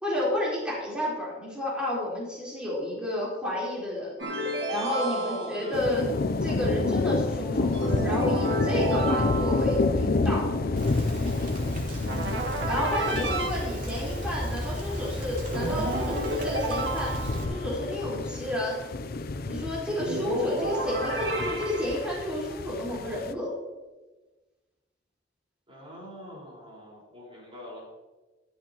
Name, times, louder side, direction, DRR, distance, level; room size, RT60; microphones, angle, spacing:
voice 1, 0.0-4.1 4.7-6.1 6.4-10.5 12.7-17.1 17.5-18.8 19.4-23.5, left 1 dB, 5° right, -7 dB, 4.3 m, -31 dB
sound 1, 4.2-5.8 7.7-9.8 12.1-13.5 15.5-17.6 20.0-22.1, right 1 dB, 65° right, 2.1 m, -31 dB
voice 2, 4.8-5.9 25.7-27.9, equal, 30° right, -4 dB, 4.9 m, -40 dB
sound 2, 5.7-23.3, left 3 dB, 55° left, 0.6 m, -30 dB
Rain, 10.8-17.4, equal, 45° right, 2.7 m, -35 dB
14.0 x 13.0 x 3.0 m, 1.2 s
head